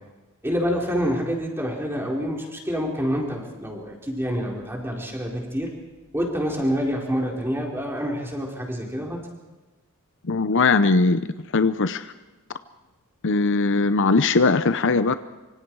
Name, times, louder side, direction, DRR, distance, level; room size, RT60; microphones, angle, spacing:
voice 1, 0.4-5.7 6.1-9.2, equal, 10° right, -1 dB, 4.3 m, -27 dB
voice 2, 10.3-11.2 11.5-12.0 13.2-15.1, left 3 dB, 55° left, 12 dB, 0.7 m, -19 dB
26.0 x 25.0 x 4.8 m, 1.1 s
head